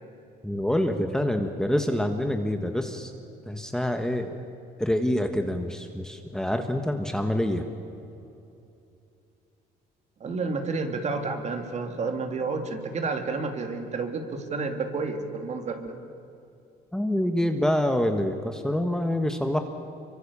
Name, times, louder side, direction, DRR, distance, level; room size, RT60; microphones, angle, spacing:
voice 1, 0.4-3.1 3.5-4.4 4.8-7.7 16.9-19.6, left 1 dB, 5° left, 5 dB, 1.5 m, -26 dB
voice 2, 10.2-15.9, right 4 dB, 40° right, 5 dB, 2.7 m, -30 dB
25.0 x 23.5 x 7.0 m, 2.8 s
cardioid pair, 110°, 17 cm